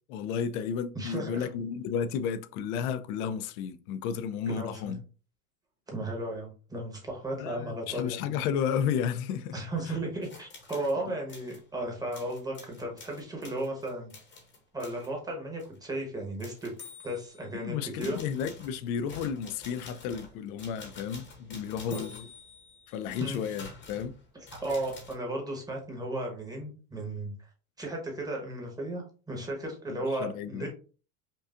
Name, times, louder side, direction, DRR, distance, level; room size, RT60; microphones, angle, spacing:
voice 1, 0.1-5.0 7.4-9.6 9.8-10.0 11.1-11.2 17.5-22.3 22.9-24.2 29.9-30.7, left 7 dB, 70° left, 0.6 m, -33 dB
voice 2, 0.9-1.5 4.5-5.0 5.9-8.4 9.5-14.1 14.7-16.7 17.0-18.2 21.9-22.1 23.2-23.4 24.5-27.3 27.8-30.7, right 1 dB, 10° right, 1.1 m, -35 dB
sound 1, 10.2-11.0 11.3-11.6 12.1-15.1 15.6-15.8 16.4-17.6 18.0-25.1, left 4 dB, 25° left, 0.9 m, -49 dB
5.4 x 2.3 x 2.5 m
supercardioid pair, 145°, 44 cm